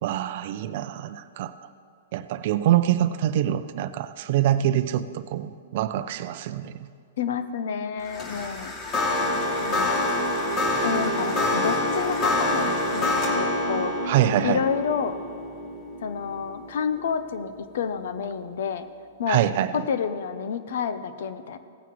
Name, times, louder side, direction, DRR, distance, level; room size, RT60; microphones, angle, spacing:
voice 1, 0.0-1.5 2.1-6.8 14.1-14.6 19.3-19.7, right 12 dB, 55° right, 12 dB, 0.5 m, -25 dB
voice 2, 7.2-8.7 9.6-10.0 10.8-13.9 14.4-15.2 16.0-18.9 19.2-19.4 19.7-21.6, left 7 dB, 70° left, 11 dB, 0.8 m, -29 dB
sound 1, 8.0-17.4, left 1 dB, 30° left, 2.4 m, -26 dB
17.5 x 9.1 x 3.2 m, 2.3 s
hypercardioid pair, 130°, 0 cm